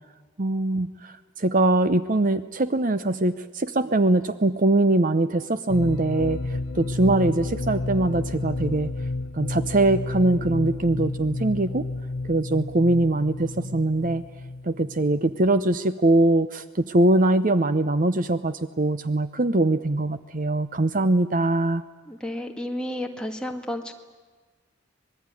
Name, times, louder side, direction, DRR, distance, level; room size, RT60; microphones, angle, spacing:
voice 1, 0.4-8.9 9.3-11.9 12.2-14.2 14.6-21.8, right 2 dB, 40° right, 13 dB, 0.7 m, -22 dB
sound 1, 5.7-15.3, left 2 dB, 70° left, 0.8 m, -31 dB
voice 2, 22.1-23.9, left 1 dB, 5° left, 3 dB, 1.8 m, -31 dB
25.5 x 21.0 x 9.8 m, 1.4 s
head